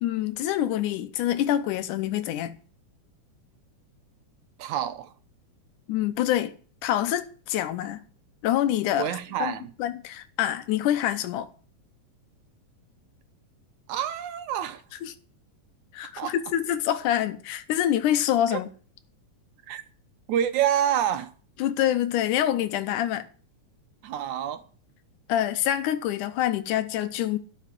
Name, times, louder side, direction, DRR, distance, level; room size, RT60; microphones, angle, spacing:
voice 1, 0.0-2.5 5.9-6.5 6.8-8.0 8.4-9.1 9.4-9.5 9.8-11.5 15.0-15.1 15.9-18.7 21.6-23.3 25.3-27.4, left 11 dB, 85° left, 2.3 m, -26 dB
voice 2, 4.6-5.1 9.0-9.7 13.9-14.8 16.2-16.4 18.5-18.6 19.7-19.8 20.3-21.3 24.0-24.6, right 10 dB, 75° right, 2.3 m, -27 dB
12.5 x 5.9 x 9.0 m
omnidirectional pair, 3.5 m